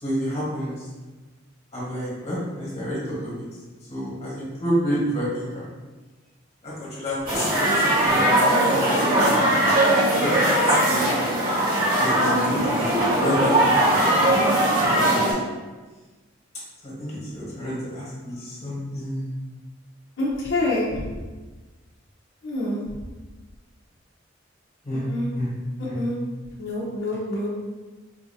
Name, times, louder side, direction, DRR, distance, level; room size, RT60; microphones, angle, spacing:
voice 1, 0.0-0.8 1.7-3.4 3.9-5.7 6.6-9.7 10.2-10.3 10.6-11.2 12.0-14.4 14.8-15.2 16.8-19.3 24.8-25.1 25.3-25.5 25.9-26.0, equal, 35° left, -7 dB, 1.3 m, -30 dB
sound 1, 7.3-15.3, right 1 dB, 50° right, 1.3 m, -20 dB
voice 2, 20.2-21.0 22.4-22.8 24.9-25.3 25.9-26.2 26.6-27.6, left 1 dB, 65° left, -7 dB, 0.7 m, -26 dB
4.1 x 2.6 x 2.7 m, 1.3 s
head